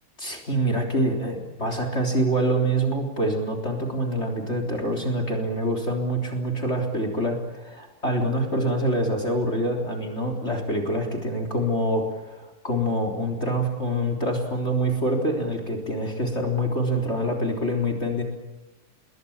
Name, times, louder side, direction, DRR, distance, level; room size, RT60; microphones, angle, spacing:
voice 1, 0.2-18.2, right 1 dB, 30° left, 4 dB, 3.9 m, -25 dB
27.5 x 22.5 x 7.3 m, 1.1 s
omnidirectional pair, 2.4 m